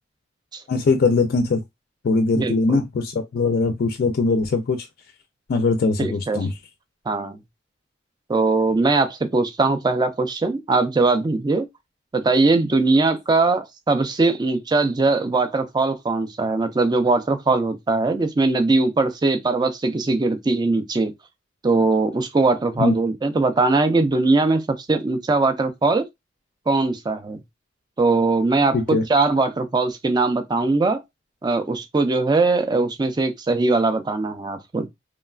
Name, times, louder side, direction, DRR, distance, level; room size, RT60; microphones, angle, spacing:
voice 1, 0.7-1.6 2.0-4.9 5.5-6.6 22.8-22.9 28.7-29.0, left 3 dB, 55° left, 0.3 m, -21 dB
voice 2, 2.4-2.8 6.0-6.4 7.1-7.4 8.3-11.7 12.1-21.1 21.6-26.1 26.7-27.4 28.0-31.0 31.4-34.9, right 3 dB, 20° right, 0.4 m, -20 dB
3.0 x 2.2 x 2.3 m
head